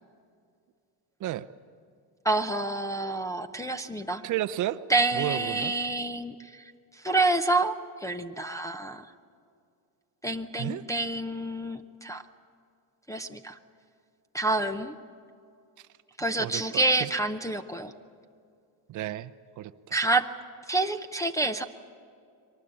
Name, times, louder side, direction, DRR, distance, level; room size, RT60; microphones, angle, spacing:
voice 1, 2.2-4.2 4.9-9.1 10.2-12.2 13.1-13.6 14.3-14.9 16.2-17.9 19.9-20.3 20.7-21.6, right 2 dB, 5° left, 3 dB, 0.5 m, -28 dB
voice 2, 4.2-4.8 5.1-5.7 10.6-10.8 16.4-17.1 18.9-20.0, right 13 dB, 40° right, 13 dB, 0.6 m, -32 dB
23.5 x 19.5 x 8.7 m, 2.5 s
cardioid pair, 150°, 47 cm